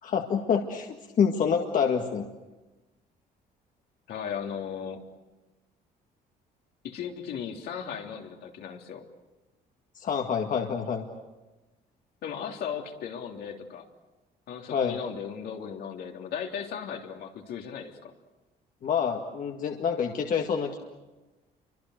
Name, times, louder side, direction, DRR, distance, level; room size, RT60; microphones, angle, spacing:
voice 1, 0.0-2.2 10.0-11.1 14.7-15.0 18.8-20.8, left 7 dB, 55° left, 2 dB, 2.0 m, -27 dB
voice 2, 4.1-5.0 6.8-9.0 12.2-13.9 14.5-18.1, left 7 dB, 75° left, 1 dB, 3.4 m, -36 dB
29.5 x 24.5 x 6.6 m, 1.1 s
cardioid pair, 110°, 17 cm